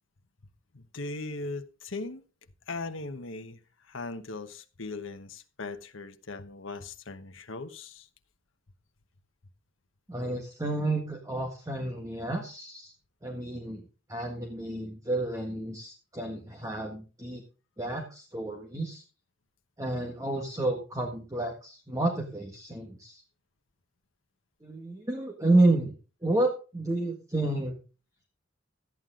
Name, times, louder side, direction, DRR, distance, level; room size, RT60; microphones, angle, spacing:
voice 1, 0.7-2.2 2.7-8.1, left 3 dB, 80° left, 1.1 m, -39 dB
voice 2, 10.1-12.9 13.2-17.4 17.8-19.0 19.8-23.2 24.6-25.9 26.2-27.7, right 2 dB, 15° right, 1.6 m, -30 dB
13.5 x 9.3 x 3.7 m
head